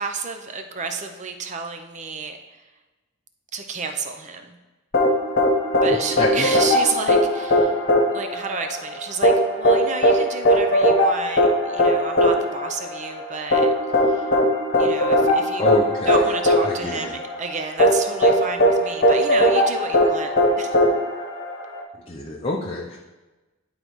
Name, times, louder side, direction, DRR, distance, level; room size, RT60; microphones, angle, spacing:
voice 1, 0.0-2.4 3.5-4.6 5.8-7.8 8.1-14.3 14.8-15.7 16.0-20.7, right 4 dB, 35° right, 6 dB, 0.6 m, -31 dB
sound 1, 4.9-21.8, equal, 45° left, 1.1 m, -19 dB
voice 2, 5.9-6.5 15.6-16.2 16.6-17.1 22.1-23.0, left 1 dB, 25° left, -2 dB, 0.6 m, -27 dB
11.0 x 3.9 x 3.1 m, 1.1 s
head